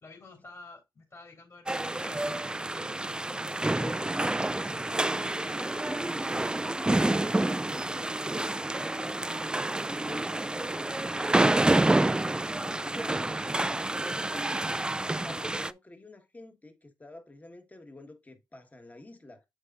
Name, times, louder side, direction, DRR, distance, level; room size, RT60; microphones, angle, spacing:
voice 1, 0.0-3.0, left 3 dB, 40° left, 3.2 m, -51 dB
sound 1, 1.7-15.7, right 2 dB, 10° right, 0.3 m, -28 dB
voice 2, 3.3-9.0 9.6-11.3 11.6-19.4, left 2 dB, 20° left, 1.3 m, -48 dB
7.4 x 6.5 x 2.4 m
cardioid pair, 80°, 9 cm